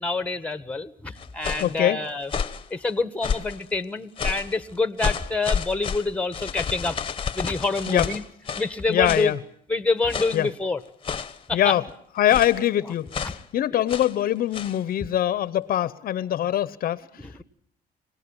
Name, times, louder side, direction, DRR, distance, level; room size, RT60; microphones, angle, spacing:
voice 1, 0.0-2.3 2.7-7.0 7.3-8.2 8.6-9.3 9.7-10.8 11.5-11.7 13.2-13.3 13.7-13.9 17.2-17.4, left 3 dB, 5° left, 12 dB, 1.4 m, -27 dB
sound 1, 1.2-1.8 2.2-2.7 3.2-3.6 4.2-4.5 5.0-8.7 9.0-9.3 10.1-10.5 11.0-11.4 12.3-12.6 13.1-13.4 13.9-14.2 14.5-14.8, left 6 dB, 30° left, 1.1 m, -30 dB
voice 2, 1.6-2.0 7.9-8.1 8.9-9.4 10.3-10.5 11.5-11.8 12.2-17.0, left 12 dB, 60° left, 17 dB, 0.9 m, -23 dB
25.5 x 18.0 x 9.0 m, 0.67 s
cardioid pair, 110°, 17 cm